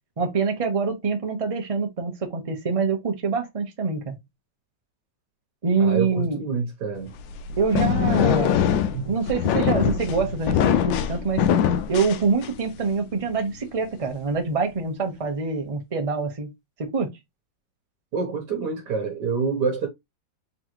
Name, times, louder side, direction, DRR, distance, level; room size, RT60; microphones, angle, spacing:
voice 1, 0.2-4.2 5.6-6.4 7.6-8.7 9.0-11.5 11.9-16.5 16.8-17.1, right 4 dB, 25° right, 0.8 m, -25 dB
voice 2, 5.8-7.1 8.9-9.1 18.1-19.9, right 5 dB, 65° right, 1.5 m, -27 dB
sound 1, 7.1-12.8, left 8 dB, 90° left, 1.3 m, -22 dB
3.9 x 3.7 x 3.0 m
omnidirectional pair, 2.0 m